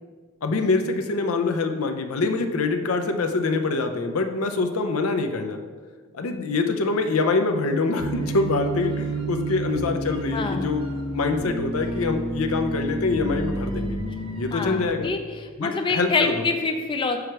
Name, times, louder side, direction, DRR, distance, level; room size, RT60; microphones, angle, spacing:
voice 1, 0.4-5.6 6.1-10.8 11.1-14.0 14.4-15.1 15.6-16.5, left 3 dB, 75° left, 6 dB, 0.6 m, -25 dB
sound 1, 8.0-14.8, right 2 dB, 25° right, 0.9 m, -30 dB
voice 2, 10.3-10.7 14.5-17.2, left 4 dB, 25° left, 5 dB, 0.4 m, -26 dB
4.8 x 4.6 x 6.0 m, 1.5 s
head